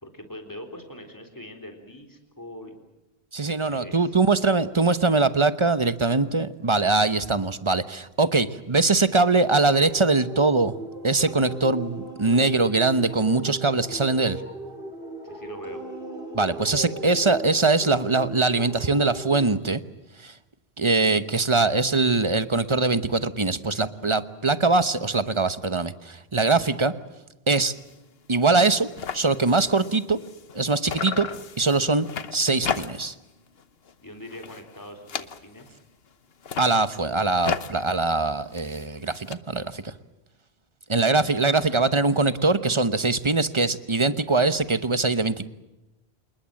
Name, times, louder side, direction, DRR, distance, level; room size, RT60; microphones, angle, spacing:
voice 1, 0.0-2.8 3.6-4.1 15.2-15.8 34.0-35.8, left 1 dB, 20° left, 4 dB, 3.8 m, -42 dB
voice 2, 3.3-10.7 11.0-14.4 16.3-19.8 20.2-20.3 20.8-26.9 27.5-27.7 28.3-28.9 29.1-30.2 30.5-31.3 31.6-32.1 32.3-33.1 36.6-39.9 40.9-45.5, right 3 dB, 30° right, 13 dB, 1.0 m, -22 dB
sound 1, 9.7-19.6, right 1 dB, 60° right, 4.9 m, -38 dB
sound 2, 27.7-28.0 28.3-28.4 28.6-30.6 30.9-33.2 33.6-33.9 34.2-35.8 36.3-39.3, left 6 dB, 65° left, 1.3 m, -35 dB
28.0 x 20.5 x 7.7 m, 0.97 s
omnidirectional pair, 1.1 m